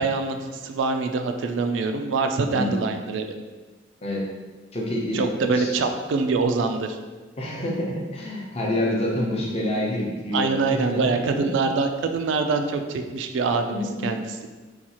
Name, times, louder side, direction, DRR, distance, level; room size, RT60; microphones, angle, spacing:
voice 1, 0.0-3.3 5.1-7.0 10.3-14.2, right 4 dB, 85° right, 6 dB, 0.3 m, -24 dB
voice 2, 4.7-5.2 5.5-5.7 7.4-11.5 13.7-14.1, left 1 dB, 35° left, -2 dB, 0.6 m, -27 dB
4.1 x 2.3 x 2.9 m, 1.3 s
head